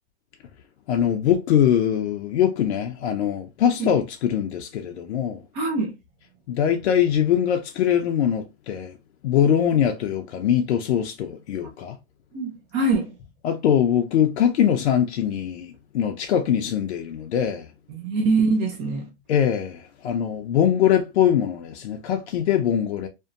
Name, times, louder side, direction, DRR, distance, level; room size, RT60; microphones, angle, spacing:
voice 1, 0.9-5.4 6.5-9.0 9.2-12.0 13.4-17.7 19.3-23.1, left 9 dB, 80° left, 0.5 m, -22 dB
voice 2, 5.5-5.9 11.6-11.7 12.3-13.1 17.9-19.1, right 3 dB, 25° right, 0.5 m, -23 dB
2.5 x 2.1 x 2.5 m
hypercardioid pair, 140°, 33 cm